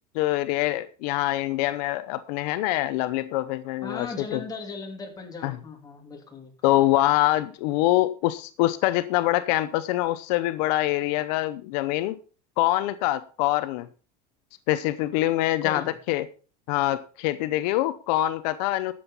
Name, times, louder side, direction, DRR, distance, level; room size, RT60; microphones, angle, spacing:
voice 1, 0.1-4.4 5.4-5.6 6.6-12.2 12.6-13.9 14.7-16.3 16.7-18.9, left 16 dB, 75° left, 13 dB, 0.8 m, -24 dB
voice 2, 3.8-6.7 15.6-15.9, left 4 dB, 20° left, 1 dB, 3.1 m, -37 dB
12.0 x 7.9 x 5.5 m, 0.37 s
cardioid pair, 145°, 21 cm